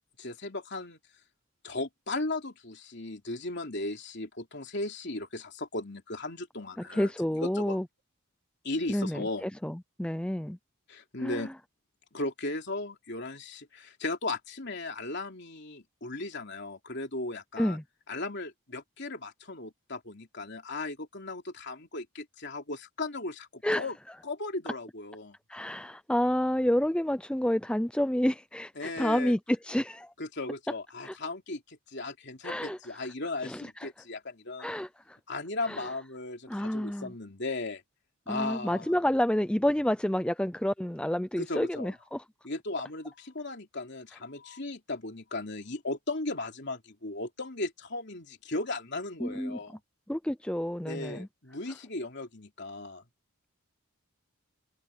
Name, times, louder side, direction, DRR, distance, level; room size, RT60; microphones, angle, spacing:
voice 1, 0.2-1.0 1.6-7.1 7.4-7.8 8.6-9.4 10.9-11.5 12.1-17.8 18.1-23.9 24.2-25.4 28.8-29.3 30.2-34.8 35.3-37.8 38.3-39.0 41.4-41.9 42.4-49.8 50.8-53.0, left 2 dB, 55° left, 3.3 m, -36 dB
voice 2, 6.8-7.9 8.9-10.6 11.2-11.5 17.6-17.8 23.6-23.9 25.5-30.1 31.0-31.2 32.4-32.8 33.4-33.9 34.6-35.2 35.7-35.9 36.5-37.1 38.3-42.2 49.2-49.6 50.1-51.3, left 1 dB, 5° left, 0.4 m, -29 dB
head